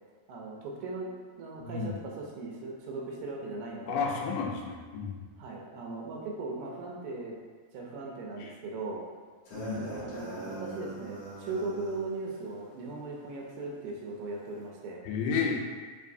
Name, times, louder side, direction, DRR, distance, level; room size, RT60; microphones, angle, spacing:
voice 1, 0.3-1.1 1.4-4.1 5.4-7.3 7.7-9.0 9.7-15.0, right 3 dB, 85° right, -2 dB, 2.3 m, -38 dB
voice 2, 1.6-2.0 3.9-5.2 8.4-8.5 9.5-10.1 15.0-15.6, left 5 dB, 85° left, -1 dB, 2.2 m, -32 dB
sound 1, 9.5-12.1, right 1 dB, 60° left, 2.0 m, -41 dB
5.5 x 2.7 x 2.6 m, 1.5 s
omnidirectional pair, 3.9 m